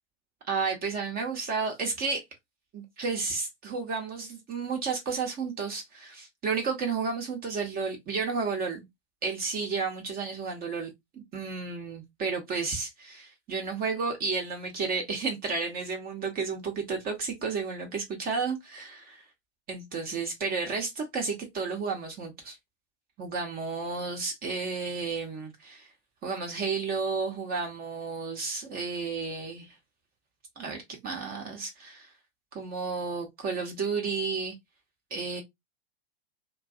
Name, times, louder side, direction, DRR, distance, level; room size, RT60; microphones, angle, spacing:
voice 1, 0.5-2.2 2.7-8.9 9.2-19.2 19.7-22.6 23.2-25.9 26.2-29.7 30.6-32.1 32.5-34.5 35.1-35.4, right 4 dB, 25° right, 0.7 m, -32 dB
2.5 x 2.3 x 2.3 m
hypercardioid pair, 100°, 33 cm